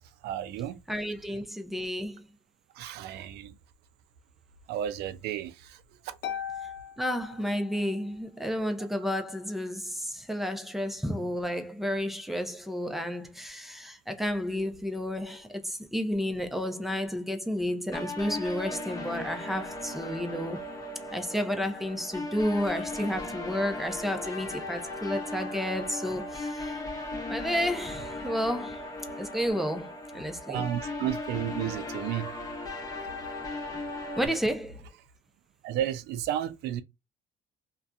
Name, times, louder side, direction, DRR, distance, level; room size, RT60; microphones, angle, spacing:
voice 1, 0.2-0.8 2.8-3.5 4.7-5.8 6.0-6.1 30.5-32.4 35.6-36.8, right 11 dB, 75° right, 0.4 m, -32 dB
voice 2, 0.9-2.3 7.0-20.6 21.1-26.8 27.3-28.8 29.2-30.6 34.2-34.8, equal, ahead, 0.5 m, -31 dB
Harp, 6.2-8.1, left 9 dB, 85° left, 0.6 m, -39 dB
sound 1, 17.9-34.3, left 2 dB, 20° left, 0.8 m, -37 dB
2.6 x 2.2 x 2.3 m
cardioid pair, 110°, 17 cm